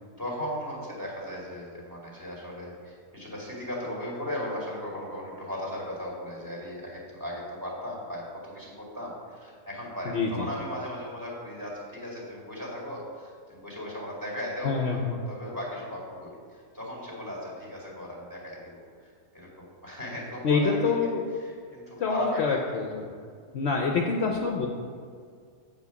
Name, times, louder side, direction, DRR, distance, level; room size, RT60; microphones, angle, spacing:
voice 1, 0.2-19.5 19.8-20.8 21.0-21.1 21.4-22.6, left 1 dB, 15° right, -4 dB, 2.0 m, -37 dB
voice 2, 10.1-10.5 14.6-15.1 20.4-21.3 22.0-23.1 23.5-24.7, left 4 dB, 60° left, 2 dB, 0.9 m, -26 dB
7.2 x 4.9 x 6.9 m, 2.1 s
omnidirectional pair, 1.4 m